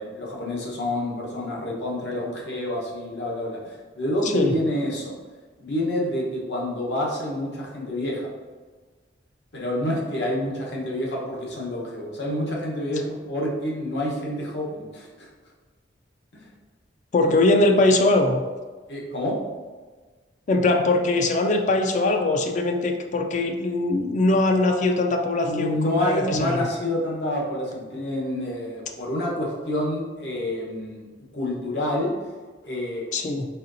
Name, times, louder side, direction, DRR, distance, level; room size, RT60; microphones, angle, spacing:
voice 1, 0.0-5.1 5.6-8.3 9.5-15.3 16.3-16.5 17.3-17.4 18.9-19.4 25.4-31.1 31.3-32.1 32.6-33.1, left 1 dB, 70° left, -3 dB, 1.0 m, -28 dB
voice 2, 4.2-4.5 17.1-18.4 20.5-26.7 33.1-33.5, left 2 dB, 40° left, 4 dB, 0.3 m, -21 dB
4.1 x 4.0 x 2.6 m, 1.4 s
head